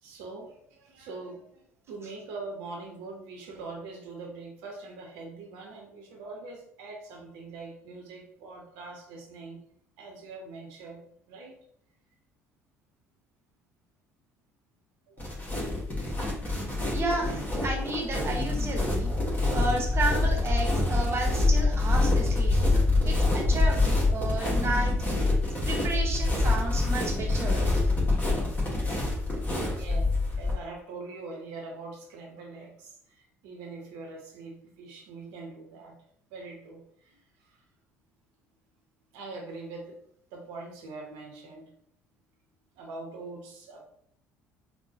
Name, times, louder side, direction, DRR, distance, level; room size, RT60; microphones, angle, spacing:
voice 1, 0.0-9.6 10.0-11.6 15.1-15.4 22.7-23.8 29.7-35.9 36.3-37.6 39.1-40.0 40.3-41.7 42.8-43.8, right 3 dB, 65° right, 1 dB, 0.7 m, -43 dB
sound 1, 15.2-30.5, left 2 dB, 25° left, 1.3 m, -26 dB
voice 2, 16.9-19.1 19.5-22.6 23.0-25.0 25.6-27.7, right 2 dB, 35° right, 2 dB, 0.9 m, -32 dB
3.6 x 2.1 x 2.7 m, 0.67 s
figure-of-eight pair, 55°, 8 cm